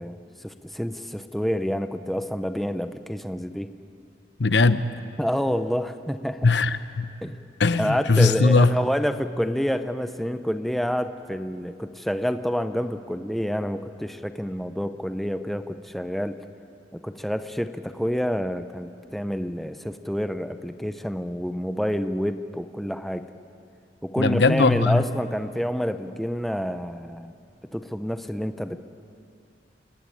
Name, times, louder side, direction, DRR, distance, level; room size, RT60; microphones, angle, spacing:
voice 1, 0.0-3.7 5.2-6.5 7.2-7.4 7.8-16.4 16.9-23.3 24.0-27.3 27.7-28.8, equal, ahead, 9 dB, 0.7 m, -28 dB
voice 2, 4.4-4.8 6.4-7.1 7.6-8.7 24.2-25.0, left 3 dB, 70° left, 12 dB, 0.9 m, -19 dB
29.0 x 16.5 x 9.9 m, 2.5 s
head